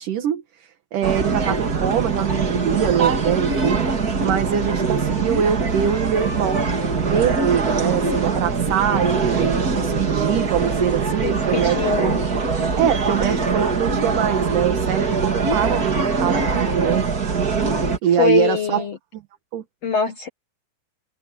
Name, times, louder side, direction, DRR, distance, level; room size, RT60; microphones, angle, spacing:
voice 1, 0.0-3.8 4.2-12.1 12.8-17.3 18.0-18.8 19.1-19.2 19.5-19.6, right 9 dB, 60° right, 2.8 m, -23 dB
sound 1, 1.0-18.0, right 4 dB, 35° right, 1.7 m, -22 dB
voice 2, 11.2-12.2 18.2-19.0 19.8-20.3, left 8 dB, 65° left, 1.6 m, -23 dB
omnidirectional pair, 4.9 m